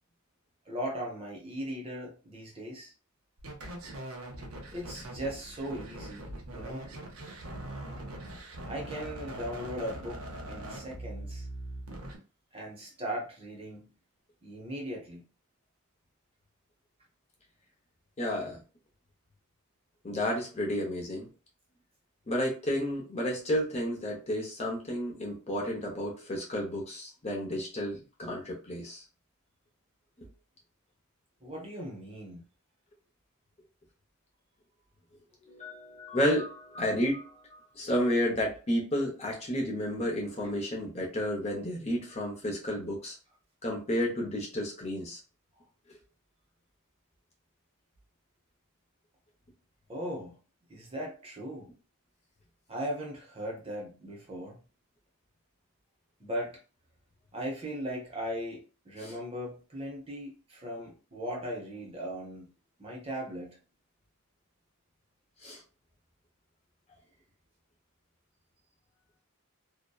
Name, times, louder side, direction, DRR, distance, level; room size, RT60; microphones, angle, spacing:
voice 1, 0.7-2.9 4.7-6.8 8.6-10.2 10.5-11.5 12.5-14.0 14.4-15.2 31.4-32.5 49.9-50.4 50.7-51.7 52.7-54.6 56.2-56.6 57.3-62.5 62.8-63.6, equal, 25° right, 0.7 m, -38 dB
sound 1, 3.4-12.2, right 1 dB, 70° right, 0.7 m, -42 dB
voice 2, 18.2-18.6 20.0-21.3 22.3-29.0 30.2-30.3 35.5-43.2 43.6-45.2 45.9-46.0 59.0-59.1 65.4-65.6, equal, 30° left, 0.7 m, -31 dB
2.7 x 2.1 x 2.2 m
head